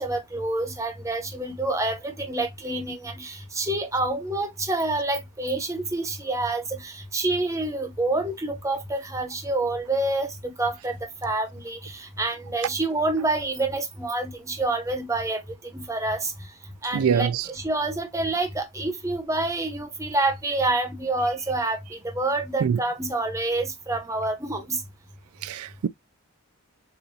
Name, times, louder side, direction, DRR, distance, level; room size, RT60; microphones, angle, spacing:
voice 1, 0.0-15.4 15.7-16.3 16.8-24.8, right 2 dB, 15° right, 0.8 m, -27 dB
voice 2, 16.9-17.4 22.6-22.8 25.4-25.9, right 7 dB, 85° right, 0.4 m, -24 dB
6.9 x 2.6 x 2.7 m
head